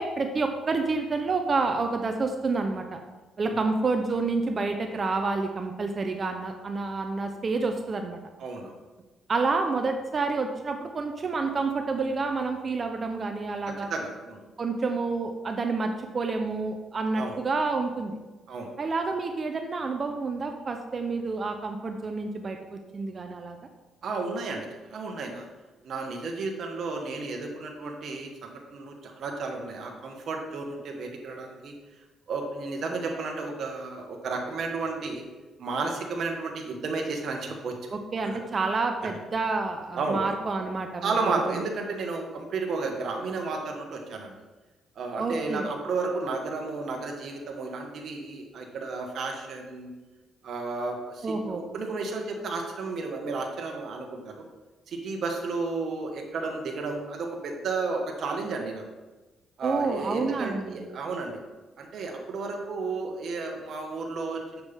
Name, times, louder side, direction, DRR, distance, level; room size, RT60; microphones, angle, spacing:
voice 1, 0.0-3.0 3.4-8.2 9.3-13.9 14.6-18.2 18.8-23.6 37.9-41.2 41.5-41.6 45.2-45.7 51.2-51.6 59.6-60.9, right 3 dB, 40° right, 5 dB, 0.7 m, -29 dB
voice 2, 8.4-8.8 13.9-14.4 17.1-17.4 18.5-18.7 24.0-25.5 25.8-31.7 32.3-35.2 35.6-37.8 38.2-38.4 39.9-40.2 41.0-44.3 45.0-49.9 50.4-54.4 54.9-58.8 59.6-61.4 61.8-64.6, right 3 dB, 65° right, 2 dB, 1.5 m, -32 dB
7.8 x 7.2 x 3.6 m, 1.2 s
cardioid pair, 90°, 0 cm